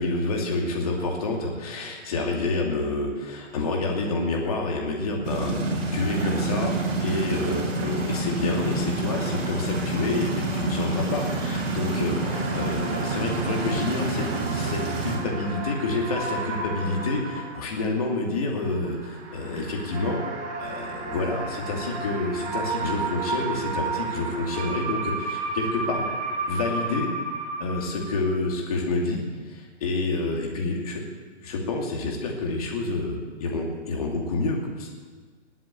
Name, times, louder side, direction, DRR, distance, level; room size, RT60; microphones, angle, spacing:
voice 1, 0.0-5.6 5.9-20.2 20.6-26.1 26.5-27.1 27.6-31.0 31.4-34.9, left 2 dB, 30° left, 0 dB, 2.6 m, -28 dB
sound 1, 5.2-15.2, right 2 dB, 55° right, 5.5 m, -28 dB
sound 2, 10.3-18.1 18.6-28.4, right 3 dB, 35° right, 3.8 m, -33 dB
20.0 x 7.7 x 8.3 m, 1.5 s
hypercardioid pair, 170°, 37 cm